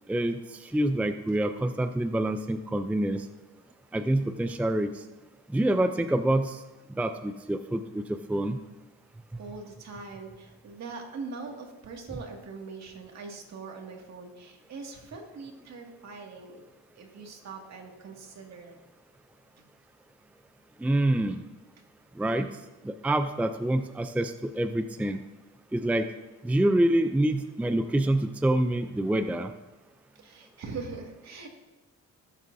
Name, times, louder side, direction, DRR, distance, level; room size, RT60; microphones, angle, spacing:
voice 1, 0.1-3.3 3.9-5.0 5.5-6.6 7.0-8.6 20.8-21.4 22.2-22.5 22.8-25.2 25.7-26.1 26.4-29.5, right 1 dB, 5° right, 9 dB, 0.4 m, -26 dB
voice 2, 9.4-16.6 17.0-18.8 30.2-31.5, right 4 dB, 60° right, 1 dB, 2.2 m, -42 dB
18.5 x 7.7 x 2.7 m, 1.1 s
cardioid pair, 90°, 30 cm